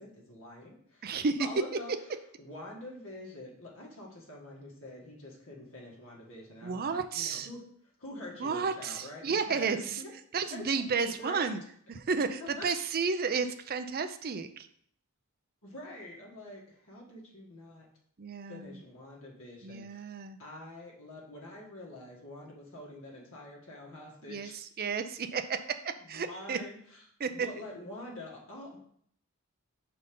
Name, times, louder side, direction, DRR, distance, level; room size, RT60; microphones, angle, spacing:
voice 1, 0.0-1.9 2.4-7.7 8.0-10.1 10.5-10.6 11.0-11.5 12.4-12.7 15.6-17.9 18.5-20.1 20.4-24.6 26.0-27.1 27.3-28.8, left 1 dB, 65° left, -3 dB, 1.8 m, -46 dB
voice 2, 1.0-1.5 6.6-7.5 8.4-10.0 10.3-11.6 11.9-14.7 18.2-18.8 19.6-20.4 24.3-24.5 24.8-26.6 27.2-27.5, right 5 dB, 45° right, 9 dB, 0.5 m, -32 dB
5.2 x 4.3 x 5.4 m, 0.64 s
head